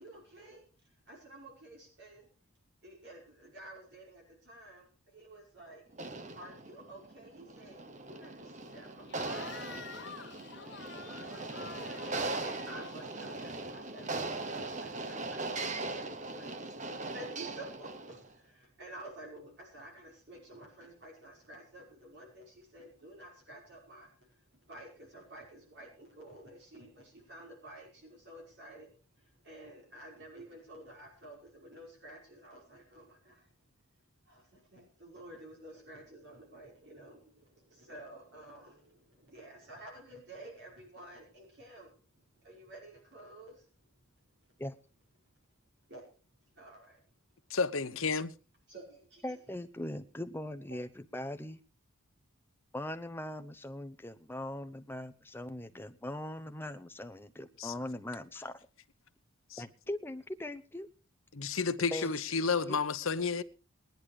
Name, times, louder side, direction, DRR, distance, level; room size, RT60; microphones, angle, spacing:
voice 1, 0.0-2.3 2.8-5.8 6.3-28.9 29.2-33.5 34.3-43.7 45.9-46.1 46.6-47.0 48.7-49.4 50.7-50.8, right 1 dB, 50° right, 5.4 m, -52 dB
sound 1, 5.9-18.3, right 2 dB, 35° right, 1.2 m, -40 dB
Cheering / Crowd, 9.1-13.7, left 6 dB, 50° left, 1.4 m, -49 dB
voice 2, 47.5-48.3 57.6-57.7 59.5-59.6 61.3-63.4, left 5 dB, 70° left, 0.9 m, -31 dB
voice 3, 49.2-51.6 52.7-58.6 59.6-60.9 61.9-62.1 62.7-62.8, left 1 dB, 10° left, 0.8 m, -40 dB
19.5 x 10.5 x 4.9 m
head